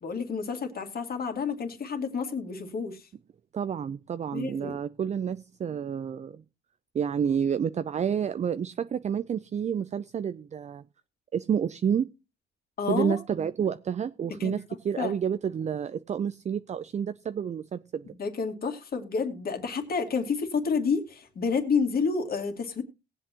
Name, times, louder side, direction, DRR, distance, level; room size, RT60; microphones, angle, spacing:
voice 1, 0.0-3.0 4.3-4.8 12.8-13.2 14.4-14.6 15.0-15.1 18.2-22.8, left 5 dB, 50° left, 2.3 m, -29 dB
voice 2, 3.5-6.4 6.9-10.8 11.3-12.1 12.9-18.1, right 8 dB, 35° right, 0.5 m, -29 dB
18.5 x 8.2 x 2.9 m
cardioid pair, 90°, 20 cm